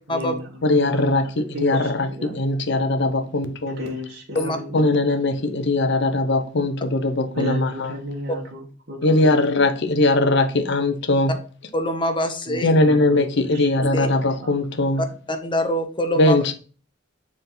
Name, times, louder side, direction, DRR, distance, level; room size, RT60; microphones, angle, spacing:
voice 1, 0.1-2.4 3.7-5.1 7.3-9.8 12.5-14.5 15.0-15.2, left 1 dB, 55° right, 1.4 m, -34 dB
voice 2, 0.6-3.8 4.7-7.9 9.0-11.4 12.6-15.1 16.2-16.5, left 2 dB, 60° left, 0.8 m, -20 dB
voice 3, 11.7-12.7 13.9-14.1 15.3-16.4, left 1 dB, 25° left, 0.9 m, -24 dB
6.8 x 3.6 x 3.8 m
head